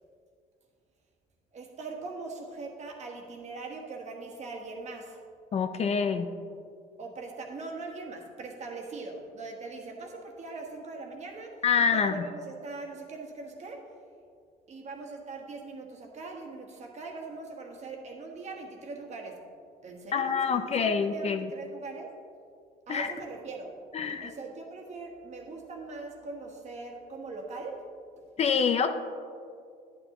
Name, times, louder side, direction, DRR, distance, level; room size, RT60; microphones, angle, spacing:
voice 1, 1.5-5.2 7.0-11.6 11.9-13.9 14.7-19.4 19.8-22.1 22.9-23.7 24.2-27.8, right 3 dB, 45° right, 1 dB, 1.4 m, -41 dB
voice 2, 5.5-6.3 11.6-12.1 20.1-21.5 22.9-23.1 23.9-24.3 28.4-28.9, left 6 dB, 40° left, 9 dB, 0.5 m, -26 dB
10.5 x 9.0 x 3.0 m, 2.3 s
cardioid pair, 110°, 17 cm